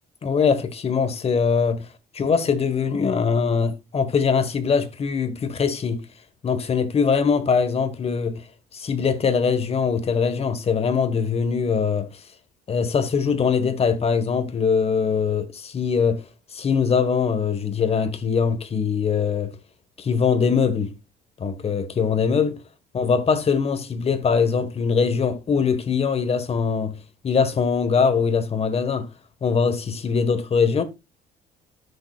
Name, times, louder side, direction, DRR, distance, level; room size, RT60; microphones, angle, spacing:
voice 1, 0.2-1.9 2.1-6.0 6.4-8.4 8.7-12.2 12.7-16.3 16.5-19.5 20.0-20.9 21.4-22.6 22.9-27.0 27.2-29.1 29.4-30.8, left 6 dB, 35° left, 1.5 m, -22 dB
13.0 x 6.8 x 2.5 m
cardioid pair, 110°, 17 cm